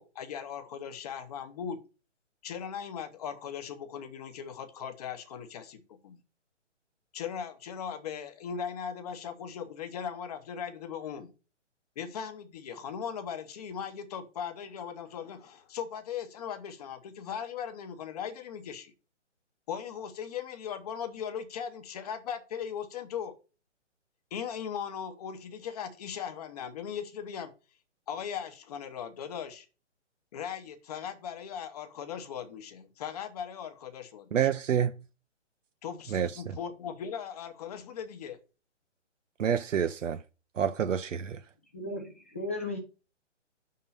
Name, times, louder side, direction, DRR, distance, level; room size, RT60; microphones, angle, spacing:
voice 1, 0.0-1.8 2.4-6.2 7.1-11.3 12.0-18.9 19.7-23.3 24.3-27.5 28.1-29.7 30.3-34.3 35.8-38.4, left 7 dB, 30° left, 0.9 m, -38 dB
voice 2, 34.3-35.0 36.1-36.6 39.4-40.2 40.5-41.5, right 8 dB, 85° right, 0.6 m, -28 dB
voice 3, 41.7-42.8, left 2 dB, 10° left, 0.4 m, -35 dB
5.4 x 3.7 x 5.6 m
figure-of-eight pair, 140°, 37 cm